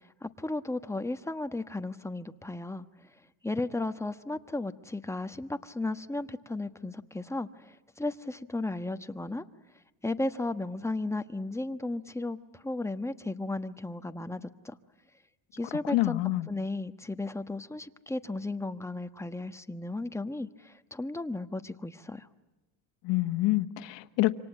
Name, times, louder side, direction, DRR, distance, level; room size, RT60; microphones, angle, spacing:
voice 1, 0.0-2.9 3.4-9.4 10.0-14.7 15.5-16.2 16.5-22.3, left 2 dB, 5° left, 9 dB, 1.2 m, -35 dB
voice 2, 15.8-16.5 23.0-24.3, left 18 dB, 75° left, 10 dB, 1.4 m, -27 dB
27.0 x 25.0 x 8.6 m, 1.0 s
cardioid pair, 105°, 44 cm